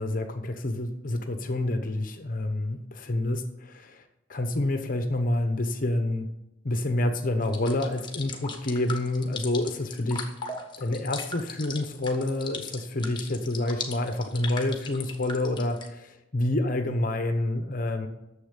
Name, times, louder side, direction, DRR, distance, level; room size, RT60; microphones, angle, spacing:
voice 1, 0.0-4.0 4.3-6.3 6.6-10.3 10.8-18.1, left 1 dB, 45° left, 7 dB, 0.9 m, -28 dB
sound 1, 7.4-15.9, left 4 dB, 25° left, 1.4 m, -38 dB
10.0 x 7.2 x 8.2 m, 0.92 s
head